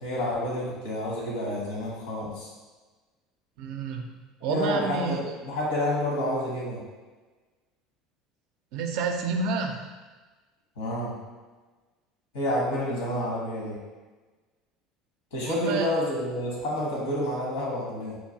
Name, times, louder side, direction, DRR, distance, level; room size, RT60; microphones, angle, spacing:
voice 1, 0.0-2.5 4.4-6.8 10.8-11.1 12.3-13.8 15.3-18.2, left 1 dB, 85° left, -4 dB, 1.0 m, -29 dB
voice 2, 3.6-4.0 4.4-5.2 8.7-9.9 15.5-15.9, right 4 dB, 70° right, 4 dB, 0.3 m, -29 dB
3.0 x 2.3 x 2.7 m, 1.3 s
hypercardioid pair, 85°, 0 cm